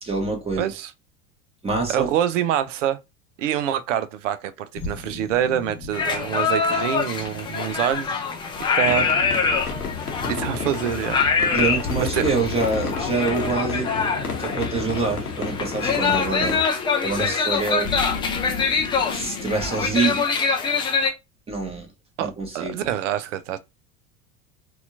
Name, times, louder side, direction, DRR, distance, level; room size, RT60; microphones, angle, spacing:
voice 1, 0.0-0.7 1.6-2.1 11.5-13.9 14.4-16.6 17.0-17.9 19.1-20.2 21.5-21.9 22.2-22.9, right 4 dB, 15° right, 1.3 m, -26 dB
voice 2, 0.6-0.9 1.9-3.0 3.4-8.2 8.7-9.1 9.6-9.7 10.3-11.2 12.0-12.2 22.2-23.6, right 10 dB, 55° right, 0.5 m, -26 dB
sound 1, 4.7-20.1, left 4 dB, 30° left, 0.7 m, -37 dB
sound 2, 5.9-21.1, left 5 dB, 10° left, 0.4 m, -25 dB
sound 3, 8.8-16.6, left 5 dB, 85° left, 0.9 m, -31 dB
4.2 x 2.4 x 2.5 m
figure-of-eight pair, 75°, 45 cm